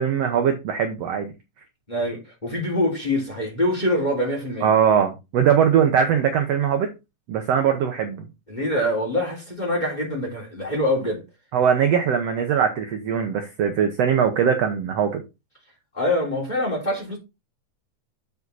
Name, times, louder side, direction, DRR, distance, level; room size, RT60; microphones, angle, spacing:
voice 1, 0.0-1.3 4.6-6.9 7.3-8.3 11.5-15.2, right 8 dB, 65° right, 1.7 m, -21 dB
voice 2, 1.9-4.7 8.5-11.2 15.9-17.2, left 1 dB, 15° left, 2.8 m, -24 dB
8.0 x 5.0 x 4.0 m
omnidirectional pair, 3.7 m